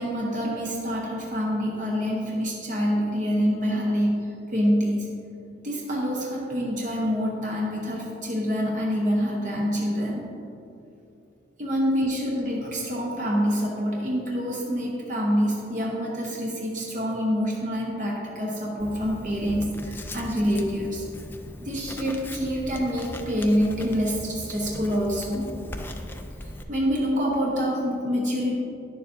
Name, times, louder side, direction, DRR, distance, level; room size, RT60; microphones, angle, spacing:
voice 1, 0.0-5.1 5.6-10.2 11.6-21.0 21.6-25.5 26.4-28.6, equal, 40° right, -3 dB, 0.9 m, -26 dB
Writing, 18.8-26.6, left 1 dB, 10° left, 0.3 m, -39 dB
10.0 x 6.9 x 2.6 m, 2.6 s
head